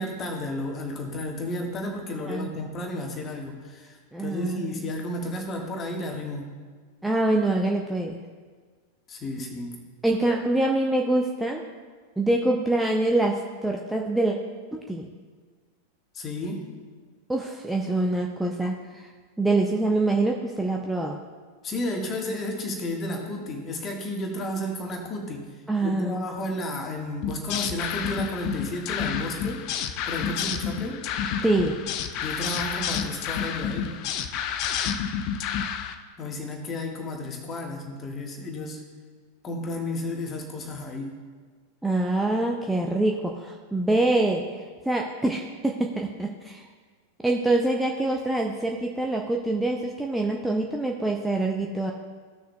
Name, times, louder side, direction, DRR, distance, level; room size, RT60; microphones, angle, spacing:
voice 1, 0.0-6.5 9.1-9.8 16.1-16.7 21.6-25.5 25.8-29.7 30.1-31.0 32.2-34.0 36.2-38.8 39.4-41.2, left 1 dB, 25° left, 2 dB, 1.5 m, -32 dB
voice 2, 4.1-4.9 7.0-8.2 10.0-11.6 12.2-14.4 14.7-15.1 17.3-19.1 19.4-21.2 25.7-26.2 31.4-31.8 41.8-44.4 44.9-46.6 47.2-51.9, right 2 dB, 5° right, 0 dB, 0.6 m, -25 dB
sound 1, 27.2-35.9, left 8 dB, 40° left, 0.5 m, -30 dB
16.0 x 6.4 x 2.3 m, 1.5 s
figure-of-eight pair, 90°, 0 cm